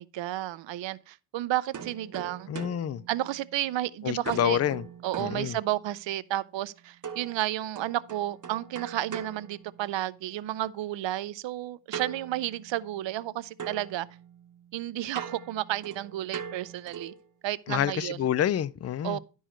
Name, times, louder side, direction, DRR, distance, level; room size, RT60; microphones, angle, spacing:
voice 1, 0.0-2.5 3.1-4.6 5.0-14.1 14.7-17.1 17.4-18.2 19.0-19.2, right 14 dB, 75° right, 0.6 m, -32 dB
sound 1, 1.7-3.8 4.3-6.1 7.0-10.3 11.9-13.3 13.6-17.3, right 7 dB, 45° right, 1.0 m, -42 dB
voice 2, 2.5-3.0 4.0-4.9 5.2-5.6 17.7-19.2, left 10 dB, 35° left, 0.4 m, -28 dB
11.5 x 4.7 x 4.4 m
cardioid pair, 95°, 44 cm